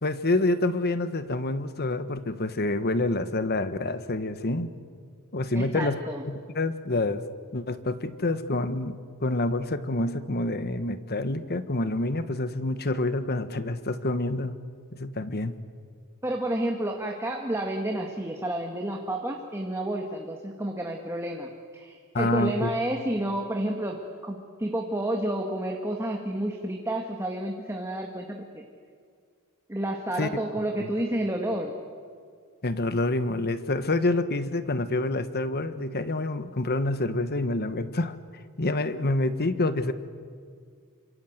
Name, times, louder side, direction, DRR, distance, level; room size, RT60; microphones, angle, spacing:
voice 1, 0.0-4.7 5.3-6.0 6.3-7.2 7.5-14.6 14.9-15.6 22.1-22.7 30.2-30.3 30.8-30.9 32.6-38.1 38.6-39.9, left 2 dB, 45° left, 11 dB, 1.4 m, -27 dB
voice 2, 5.5-6.2 16.2-28.6 29.7-31.7, right 1 dB, 10° right, 2 dB, 1.9 m, -30 dB
28.0 x 26.0 x 8.0 m, 2.1 s
head